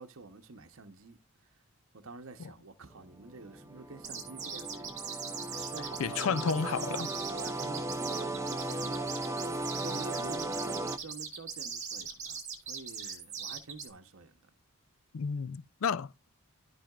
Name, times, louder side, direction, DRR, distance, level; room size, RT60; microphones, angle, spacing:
voice 1, 0.0-1.5 1.9-5.3 5.5-12.4 12.7-14.5, right 3 dB, 65° right, 0.9 m, -48 dB
sound 1, 3.0-11.0, right 1 dB, 15° right, 0.6 m, -37 dB
sound 2, 4.0-13.9, right 7 dB, 35° right, 1.9 m, -40 dB
voice 2, 6.0-7.1 15.1-16.3, left 6 dB, 70° left, 0.4 m, -31 dB
13.5 x 5.6 x 2.4 m
head